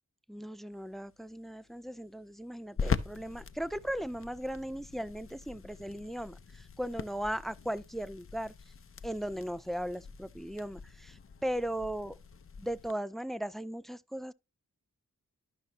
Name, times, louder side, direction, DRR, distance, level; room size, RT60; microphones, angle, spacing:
voice 1, 0.3-6.4 6.8-8.5 9.0-12.2 12.6-14.3, equal, ahead, 0.3 m, -37 dB
sound 1, 0.7-12.9, left 6 dB, 45° left, 0.6 m, -42 dB
12.5 x 5.8 x 2.8 m
wide cardioid pair, 105°, 31 cm